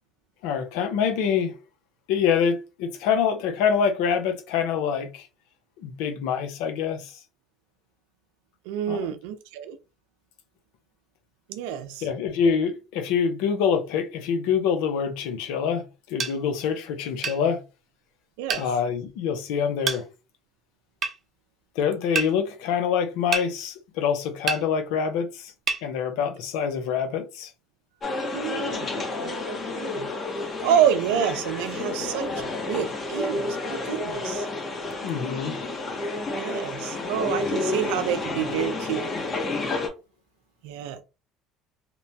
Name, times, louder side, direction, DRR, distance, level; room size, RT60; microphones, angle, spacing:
voice 1, 0.4-1.6 2.1-5.3 5.8-7.2 8.9-9.1 12.0-17.6 18.5-20.0 21.8-25.5 25.8-27.5 35.0-35.6, left 7 dB, 80° left, 0.6 m, -25 dB
voice 2, 8.7-9.8 11.5-12.1 18.4-18.6 28.3-28.9 29.2-30.1 30.6-34.5 36.3-39.1 40.6-41.0, right 9 dB, 85° right, 0.4 m, -28 dB
sound 1, 16.2-16.4 17.2-17.4 18.5-18.7 19.9-20.0 21.0-21.2 22.2-22.3 23.3-23.5 24.5-24.6 25.7-25.8, right 5 dB, 40° right, 0.7 m, -27 dB
sound 2, 28.0-39.9, left 2 dB, 35° left, 1.0 m, -30 dB
2.9 x 2.1 x 2.7 m
supercardioid pair, 90°, 0 cm